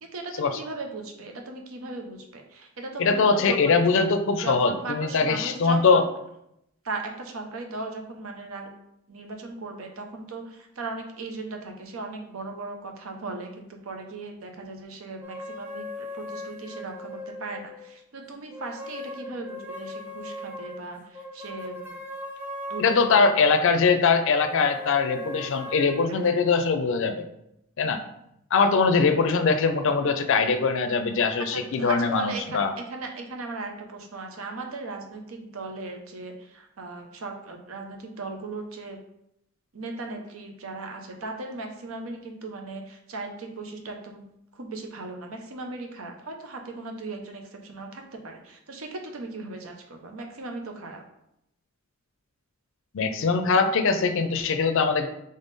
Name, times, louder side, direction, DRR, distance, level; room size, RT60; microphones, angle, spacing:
voice 1, 0.0-3.8 4.4-6.1 6.8-8.7 9.1-22.0 22.7-23.4 26.1-26.2 31.5-39.0 39.7-44.2 44.5-51.0, right 3 dB, 80° right, 3 dB, 0.7 m, -37 dB
voice 2, 3.0-6.1 22.8-27.2 27.8-28.0 28.5-32.7 52.9-55.1, left 4 dB, 65° left, 8 dB, 0.4 m, -22 dB
sound 1, 15.2-18.0 18.5-23.7 24.3-26.8, left 1 dB, 10° right, 0.7 m, -39 dB
3.7 x 3.6 x 4.0 m, 0.80 s
head